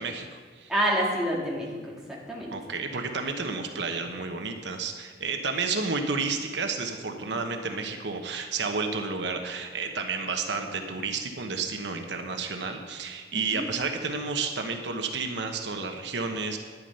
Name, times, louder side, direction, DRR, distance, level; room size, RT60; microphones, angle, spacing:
voice 1, 0.0-0.7 2.5-16.6, right 4 dB, 75° right, 5 dB, 1.0 m, -31 dB
voice 2, 0.7-2.5 7.3-7.4 13.3-13.7, equal, 5° right, -4 dB, 2.1 m, -28 dB
11.0 x 10.5 x 5.5 m, 1.5 s
head